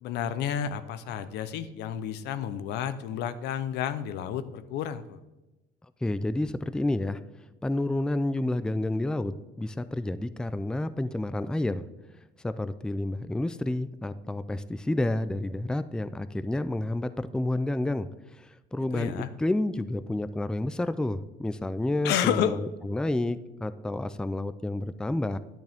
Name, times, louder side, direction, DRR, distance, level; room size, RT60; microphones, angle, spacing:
voice 1, 0.0-5.2 18.9-19.3 22.0-22.6, left 9 dB, 85° left, 12 dB, 0.7 m, -30 dB
voice 2, 6.0-7.2 7.6-11.9 12.4-25.4, left 1 dB, 5° left, 13 dB, 0.4 m, -30 dB
10.5 x 8.9 x 3.5 m, 1.1 s
cardioid pair, 110°, 17 cm